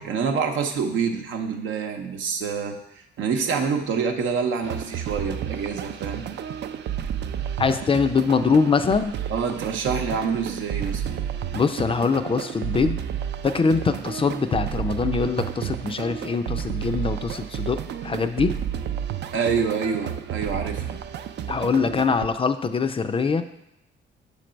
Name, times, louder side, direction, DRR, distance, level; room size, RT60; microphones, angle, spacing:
voice 1, 0.0-6.3 9.3-11.2 19.3-21.0, right 6 dB, 80° right, 5 dB, 0.8 m, -27 dB
sound 1, 4.6-22.3, right 9 dB, 60° right, 0.4 m, -31 dB
voice 2, 7.6-9.1 11.5-13.0 13.4-18.5 21.5-23.4, left 5 dB, 25° left, 9 dB, 0.4 m, -23 dB
6.8 x 3.3 x 5.0 m, 0.83 s
cardioid pair, 90°, 20 cm